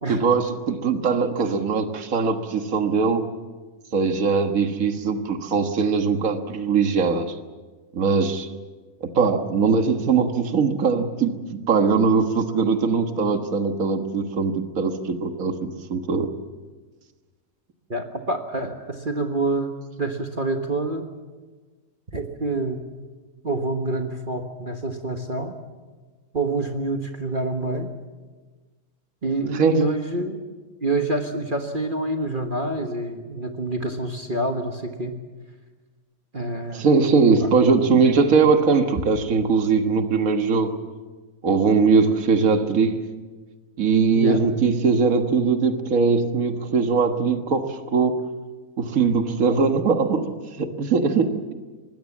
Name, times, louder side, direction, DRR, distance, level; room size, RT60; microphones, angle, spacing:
voice 1, 0.1-3.2 3.9-7.4 7.9-8.5 9.0-16.3 29.5-29.9 36.7-40.8 41.4-43.0 43.8-48.2 48.8-51.5, right 5 dB, 65° right, 7 dB, 1.9 m, -21 dB
voice 2, 17.9-21.1 22.1-22.8 23.4-25.6 26.3-27.9 29.2-30.4 30.8-35.1 36.3-36.9 37.4-37.5 44.1-44.4, right 2 dB, 35° right, 4 dB, 1.6 m, -27 dB
24.5 x 21.0 x 7.3 m, 1.3 s
omnidirectional pair, 1.6 m